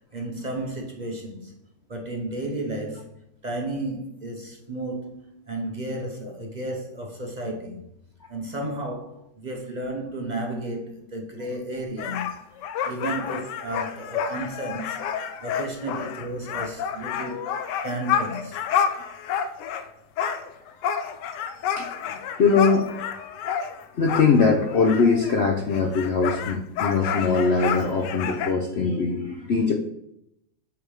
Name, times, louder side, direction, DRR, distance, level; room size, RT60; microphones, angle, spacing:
voice 1, 0.1-1.5 1.9-3.1 3.4-7.8 8.3-12.3 12.8-15.0 15.4-18.6, right 1 dB, 40° right, 0.6 m, -33 dB
sound 1, 12.0-19.9 20.2-25.4 25.7-28.5, left 8 dB, 75° left, 1.2 m, -29 dB
voice 2, 22.4-22.9 24.0-29.7, left 4 dB, 60° left, 0.7 m, -22 dB
8.3 x 3.5 x 4.9 m
omnidirectional pair, 1.9 m